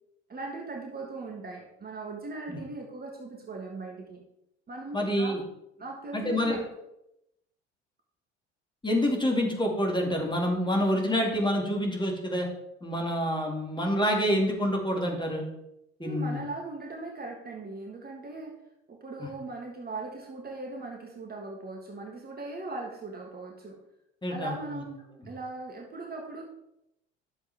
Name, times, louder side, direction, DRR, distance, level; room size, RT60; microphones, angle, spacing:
voice 1, 0.3-4.2 4.7-5.4 5.8-6.7 16.0-18.6 18.9-23.8 24.3-26.4, right 3 dB, 25° right, 1 dB, 1.6 m, -39 dB
voice 2, 4.9-5.4 6.1-6.6 8.8-12.5 12.8-15.5 16.0-16.4 19.2-19.3 24.2-24.8, equal, 15° left, 0 dB, 2.3 m, -27 dB
11.0 x 7.0 x 3.5 m, 0.84 s
figure-of-eight pair, 60°, 34 cm